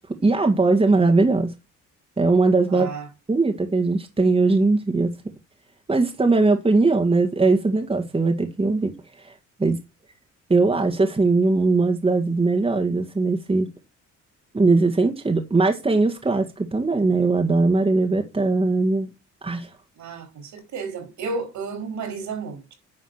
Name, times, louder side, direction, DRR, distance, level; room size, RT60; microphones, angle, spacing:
voice 1, 0.2-1.5 2.2-2.9 3.3-5.1 5.9-8.9 9.3-9.4 9.6-9.8 10.5-13.7 14.5-19.1 19.4-19.7, right 3 dB, 20° right, 1.7 m, -20 dB
voice 2, 2.7-3.1 20.0-22.7, right 4 dB, 70° right, 4.3 m, -32 dB
9.9 x 3.9 x 6.5 m
cardioid pair, 90°, 30 cm